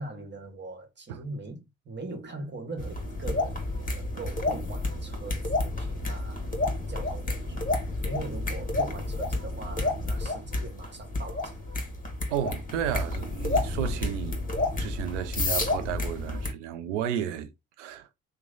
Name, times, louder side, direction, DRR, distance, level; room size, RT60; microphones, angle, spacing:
voice 1, 0.0-3.6 3.9-6.5 6.9-11.6, right 2 dB, 30° right, 1.3 m, -41 dB
sound 1, 2.8-16.5, left 2 dB, 25° left, 1.5 m, -30 dB
voice 2, 12.3-17.5 17.8-18.1, right 10 dB, 85° right, 0.6 m, -33 dB
3.1 x 2.2 x 3.8 m
hypercardioid pair, 50°, 35 cm